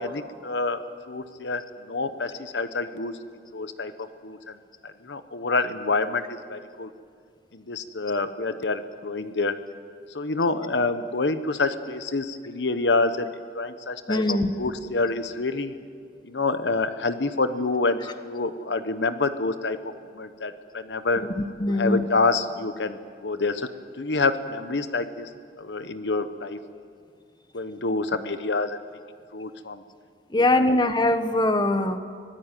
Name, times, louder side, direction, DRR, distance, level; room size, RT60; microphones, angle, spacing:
voice 1, 0.0-1.6 1.9-3.2 3.5-4.5 4.8-6.9 7.5-9.5 10.1-15.7 16.2-19.8 20.1-21.2 21.7-23.0 23.2-23.7 24.0-25.3 25.6-26.6 27.5-28.8 29.3-29.8, left 3 dB, 80° left, 10 dB, 1.1 m, -27 dB
voice 2, 14.1-14.5 21.6-22.1 30.3-32.0, left 2 dB, 25° left, 8 dB, 1.3 m, -22 dB
24.5 x 17.0 x 9.1 m, 2.2 s
head